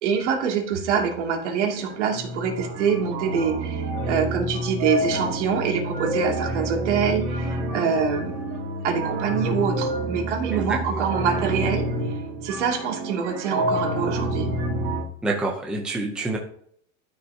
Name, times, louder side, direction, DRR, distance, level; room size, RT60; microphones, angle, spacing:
voice 1, 0.0-8.4 8.8-11.9 12.4-14.5, right 6 dB, 75° right, 1 dB, 2.6 m, -25 dB
sound 1, 0.9-1.3 1.6-15.0, right 1 dB, 40° right, 2.6 m, -28 dB
voice 2, 10.5-11.1 15.2-16.4, right 2 dB, ahead, 0 dB, 0.6 m, -27 dB
13.0 x 5.8 x 2.8 m, 0.63 s
supercardioid pair, 175°, 35 cm